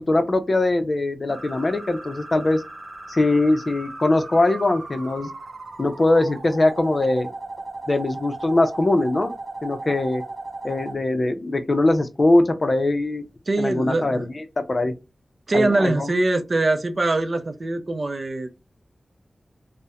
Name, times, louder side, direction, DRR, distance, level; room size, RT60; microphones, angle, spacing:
voice 1, 0.0-2.6 3.1-5.3 5.8-7.3 7.9-9.3 9.6-10.2 10.6-13.2 13.6-15.0 15.5-16.1, left 2 dB, 40° left, 0.5 m, -21 dB
sound 1, 1.3-10.9, right 2 dB, 90° right, 0.7 m, -37 dB
voice 2, 13.5-14.3 15.5-18.5, right 2 dB, 50° right, 0.4 m, -23 dB
2.9 x 2.0 x 2.3 m
wide cardioid pair, 95°, 0 cm